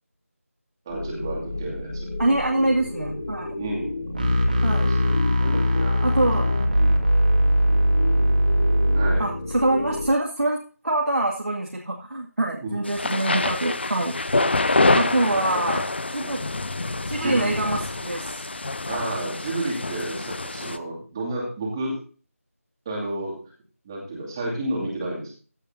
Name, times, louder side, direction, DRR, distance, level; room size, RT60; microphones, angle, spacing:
sound 1, 0.9-10.1, left 2 dB, 25° left, 3.3 m, -33 dB
voice 1, 0.9-2.1 2.6-2.7 3.6-3.9 5.0-6.0 6.8-7.0 8.9-9.2 12.6-12.8 15.2-16.5 17.2-17.8 18.9-22.0 22.9-23.5 23.8-25.3, right 2 dB, 15° right, -3 dB, 2.6 m, -31 dB
voice 2, 2.2-3.5 4.6-4.9 6.0-6.5 9.2-14.2 14.9-15.8 16.1-16.4 17.1-18.4, right 1 dB, 70° right, -1 dB, 2.3 m, -25 dB
sound 2, 4.1-9.2, equal, 35° right, 2.6 m, -20 dB
sound 3, 12.8-20.8, left 2 dB, 45° left, 0.8 m, -26 dB
15.5 x 9.4 x 2.8 m, 0.38 s
figure-of-eight pair, 165°, 8 cm